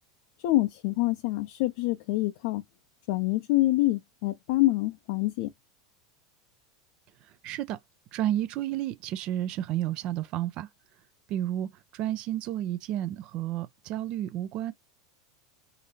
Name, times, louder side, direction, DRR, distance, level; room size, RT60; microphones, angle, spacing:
voice 1, 0.4-2.6 3.1-5.5, left 17 dB, 55° left, 0.4 m, -26 dB
voice 2, 7.2-7.8 8.1-10.7 11.3-14.7, right 12 dB, 45° right, 0.3 m, -31 dB
3.9 x 2.6 x 2.7 m
figure-of-eight pair, 85°, 2 cm